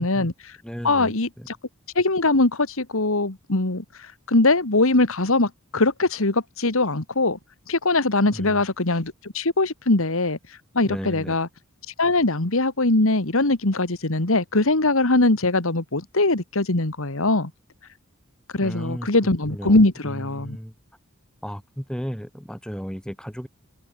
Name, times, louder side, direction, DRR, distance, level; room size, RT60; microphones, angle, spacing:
voice 1, 0.0-0.5 0.8-1.6 2.0-7.4 7.7-10.4 10.7-11.5 12.0-17.5 18.5-20.6, left 2 dB, 70° left, 2.2 m, -21 dB
voice 2, 0.6-1.5 8.3-8.6 10.8-11.4 18.6-19.1 19.5-20.7 21.4-23.5, equal, 5° left, 3.7 m, -34 dB
head